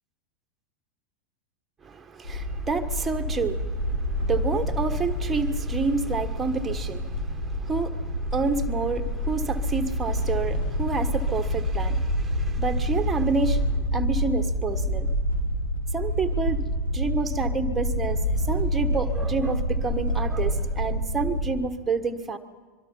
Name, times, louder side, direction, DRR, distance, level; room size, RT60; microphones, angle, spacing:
voice 1, 1.8-15.1 15.9-16.6 16.9-22.4, right 4 dB, 15° right, 6 dB, 1.5 m, -29 dB
sound 1, 2.2-21.5, equal, 65° left, 3.8 m, -27 dB
25.0 x 23.0 x 5.7 m, 1.3 s
figure-of-eight pair, 90°, 0 cm